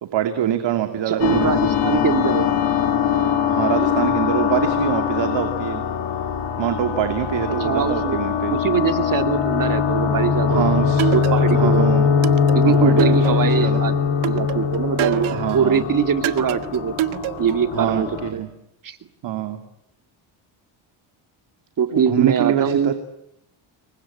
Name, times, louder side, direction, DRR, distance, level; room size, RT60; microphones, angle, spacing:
voice 1, 0.0-1.8 3.5-5.8 6.6-8.6 10.5-11.0 11.5-12.1 12.6-13.8 15.3-15.8 17.7-18.5 19.2-19.6 21.9-22.9, right 10 dB, 60° right, 7 dB, 2.7 m, -24 dB
voice 2, 1.1-2.5 7.6-8.2 8.5-11.9 12.5-13.9 14.3-16.9 17.4-18.4 18.8-19.0 21.8-22.9, right 7 dB, 40° right, 8 dB, 2.6 m, -22 dB
sound 1, 1.2-18.3, left 7 dB, 75° left, 4.7 m, -21 dB
Pringle rhythm - Bird Twirl, 11.0-11.7 12.2-13.7 14.2-15.6 16.2-17.7, right 13 dB, 80° right, 1.5 m, -26 dB
28.5 x 23.5 x 8.7 m, 0.78 s
cardioid pair, 115°, 48 cm